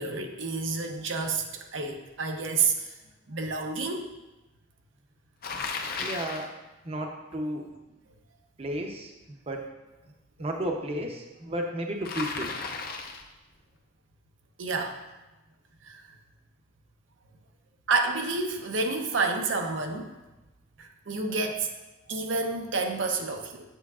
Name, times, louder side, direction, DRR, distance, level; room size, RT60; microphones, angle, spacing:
voice 1, 0.0-1.4 1.7-2.9 3.3-4.0 14.6-15.0 15.8-16.0 17.9-20.1 20.8-21.7 22.1-23.6, right 4 dB, 80° right, 3 dB, 0.7 m, -29 dB
Bicycle, 5.4-6.5 12.0-13.3, left 4 dB, 50° left, 0.6 m, -34 dB
voice 2, 6.0-6.5 6.8-7.7 8.6-9.7 10.4-12.5, right 1 dB, 30° right, 2 dB, 0.7 m, -33 dB
8.2 x 6.8 x 2.4 m, 1.0 s
head